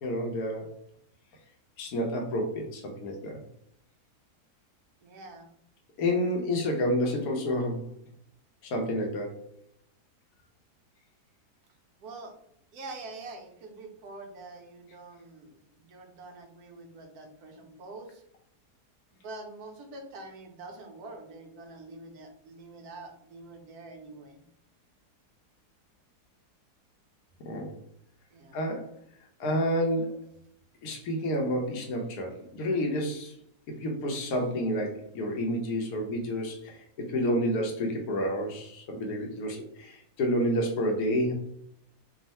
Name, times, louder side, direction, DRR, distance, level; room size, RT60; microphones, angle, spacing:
voice 1, 0.0-0.7 1.8-3.4 6.0-7.9 8.6-9.4 27.5-27.7 28.5-28.9 29.4-30.2 30.8-33.4 33.7-41.3, equal, 70° left, 1 dB, 1.2 m, -29 dB
voice 2, 5.0-5.5 12.0-12.4 12.7-18.2 19.1-24.4 28.3-28.6, right 2 dB, 70° right, 3 dB, 1.2 m, -45 dB
3.6 x 2.4 x 4.1 m, 0.71 s
omnidirectional pair, 1.7 m